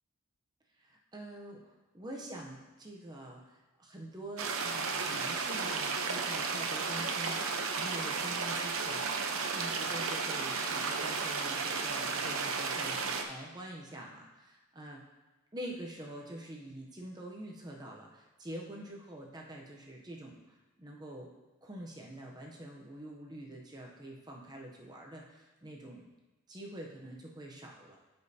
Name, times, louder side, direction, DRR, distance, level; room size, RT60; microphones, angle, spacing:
voice 1, 0.8-15.0 15.5-20.4 20.8-21.3 21.6-26.1 26.5-28.0, right 1 dB, 20° right, -1 dB, 0.6 m, -46 dB
sound 1, 4.4-13.2, right 4 dB, 75° right, 0.7 m, -33 dB
12.5 x 5.2 x 2.7 m, 1.2 s
head